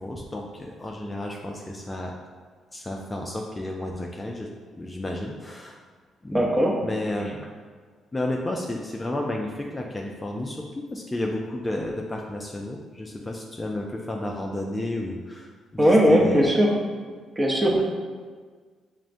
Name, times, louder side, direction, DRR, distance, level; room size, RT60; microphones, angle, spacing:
voice 1, 0.0-2.2 2.7-4.5 4.7-5.8 6.2-6.5 6.8-7.4 8.1-10.6 10.9-16.5 17.7-17.8, left 1 dB, 15° left, 0 dB, 0.3 m, -32 dB
voice 2, 6.3-6.8 15.8-16.7 17.4-17.8, equal, 20° right, -2 dB, 0.7 m, -19 dB
5.9 x 2.1 x 2.5 m, 1.5 s
cardioid pair, 90°, 0 cm